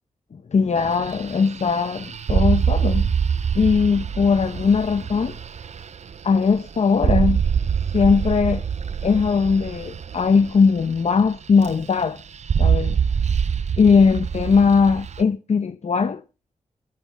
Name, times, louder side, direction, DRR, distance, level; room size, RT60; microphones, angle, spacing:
voice 1, 0.5-3.1 3.5-5.4 6.2-7.4 7.9-8.6 9.0-12.2 12.6-13.0 13.8-16.2, left 5 dB, 60° left, 1.0 m, -19 dB
sound 1, 0.8-11.3 11.6-12.0 12.3-15.2, right 7 dB, 60° right, 0.6 m, -24 dB
20.5 x 8.9 x 3.6 m
cardioid pair, 65°, 13 cm